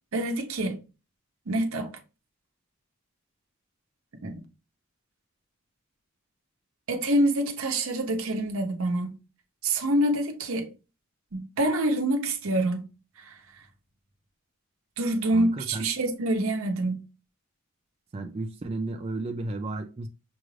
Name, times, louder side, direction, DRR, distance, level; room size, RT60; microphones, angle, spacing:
voice 1, 0.1-0.8 1.5-1.9 4.2-4.4 6.9-9.2 9.6-10.7 11.3-12.9 13.2-13.3 15.0-17.0, right 1 dB, 80° right, 0.8 m, -26 dB
voice 2, 15.3-15.9 18.1-20.1, right 2 dB, 30° right, 0.3 m, -33 dB
6.0 x 2.4 x 3.2 m
head